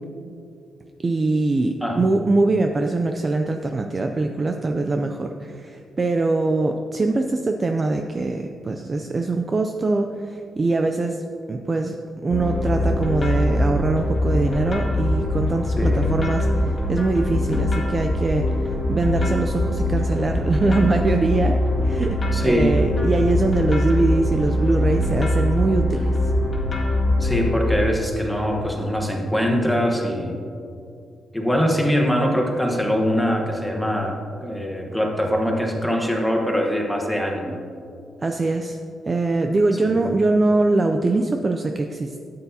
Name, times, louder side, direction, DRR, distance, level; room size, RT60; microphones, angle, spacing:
voice 1, 1.0-11.2 11.5-12.0 12.2-26.1 38.2-38.8 39.1-42.2, right 3 dB, 25° right, 4 dB, 0.4 m, -22 dB
sound 1, 12.3-27.8, left 1 dB, 25° left, 1.8 m, -22 dB
voice 2, 15.8-16.1 22.3-22.8 25.0-25.1 27.2-30.4 31.3-34.1 34.4-37.6 39.8-40.0, equal, ahead, 0 dB, 1.1 m, -23 dB
13.0 x 9.1 x 2.8 m, 2.5 s
wide cardioid pair, 170°, 0 cm